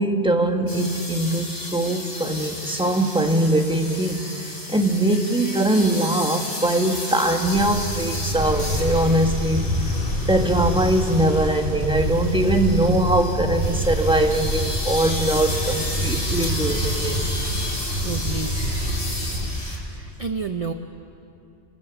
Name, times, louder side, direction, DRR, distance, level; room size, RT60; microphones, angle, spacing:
voice 1, 0.0-9.7 10.3-17.1, right 1 dB, 5° right, 4 dB, 1.4 m, -22 dB
sound 1, 0.7-19.8, left 1 dB, 65° left, 4.1 m, -33 dB
sound 2, 7.4-19.5, equal, 50° right, 4.2 m, -26 dB
voice 2, 18.0-18.5 19.7-20.7, right 5 dB, 35° right, 7 dB, 0.7 m, -30 dB
30.0 x 22.5 x 7.1 m, 2.7 s
omnidirectional pair, 1.1 m